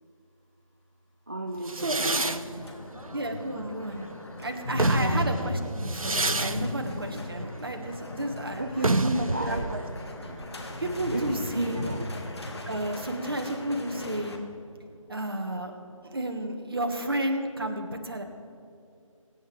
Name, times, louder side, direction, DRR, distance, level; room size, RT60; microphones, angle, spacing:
voice 1, 1.3-2.4 3.6-3.7 4.7-5.2 8.6-9.7 10.3-10.4 11.1-12.1, right 1 dB, 25° right, 2 dB, 0.5 m, -33 dB
sound 1, 1.6-4.1 4.6-12.1, right 2 dB, 90° right, 0.7 m, -31 dB
sound 2, 2.2-14.4, left 1 dB, 50° left, 1.6 m, -36 dB
voice 2, 3.1-4.1 4.4-8.6 9.4-9.8 10.8-11.8 12.6-14.4 15.1-15.7 16.0-18.2, right 1 dB, 45° right, 4 dB, 1.5 m, -32 dB
23.5 x 9.2 x 3.5 m, 2.5 s
figure-of-eight pair, 165°, 17 cm